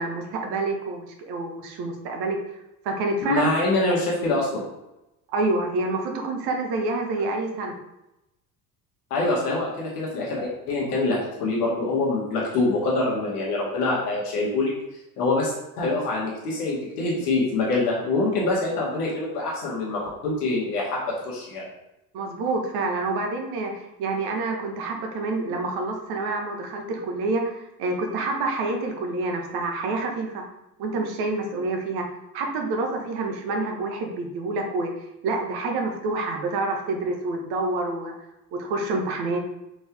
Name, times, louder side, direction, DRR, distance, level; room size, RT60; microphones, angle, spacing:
voice 1, 0.0-2.4 2.8-3.5 3.9-4.0 5.3-7.8 22.1-30.4 30.8-32.1 32.3-34.9 35.2-38.1 38.5-39.4, right 3 dB, 55° right, 2 dB, 1.6 m, -27 dB
voice 2, 3.2-4.6 9.1-14.7 15.2-21.7, left 2 dB, 70° left, -4 dB, 2.1 m, -25 dB
7.7 x 4.4 x 3.7 m, 0.92 s
figure-of-eight pair, 65°, 48 cm